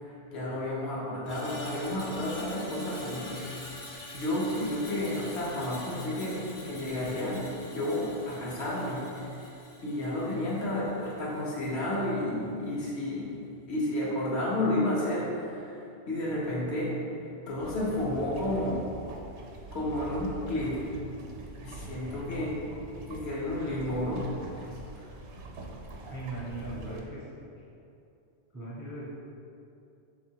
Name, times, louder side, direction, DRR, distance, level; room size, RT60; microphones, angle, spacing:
voice 1, 0.0-3.9 4.1-7.4 7.7-9.4 9.8-13.3 13.7-17.0 17.5-18.8 19.7-20.8 21.6-22.6 23.1-24.2 24.6-24.7 25.0-25.1, left 1 dB, 75° left, -5 dB, 1.2 m, -31 dB
Screech, 1.2-11.6 11.9-12.2, left 1 dB, 40° left, 0.6 m, -45 dB
sound 1, 17.6-27.0, right 2 dB, 80° right, 0.9 m, -44 dB
voice 2, 26.0-27.2 28.5-29.0, right 2 dB, 25° right, -7 dB, 0.4 m, -38 dB
3.6 x 2.7 x 4.5 m, 2.7 s
omnidirectional pair, 1.1 m